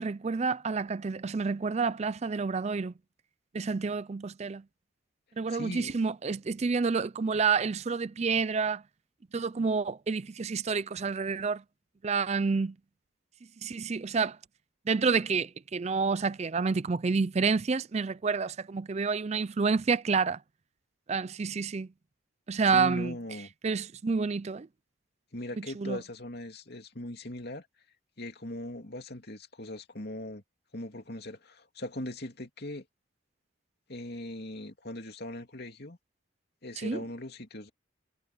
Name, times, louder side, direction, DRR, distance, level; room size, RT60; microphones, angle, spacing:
voice 1, 0.0-2.9 3.5-4.6 5.4-8.8 9.3-11.6 12.0-12.7 13.6-14.4 14.9-20.4 21.1-21.9 22.5-23.1 23.6-24.7 25.8-26.0 36.8-37.0, right 5 dB, 30° right, 0.4 m, -29 dB
voice 2, 5.5-5.9 22.6-23.5 25.3-27.7 28.2-30.4 30.7-32.8 33.9-36.0 36.6-37.7, left 1 dB, 50° left, 2.9 m, -40 dB
head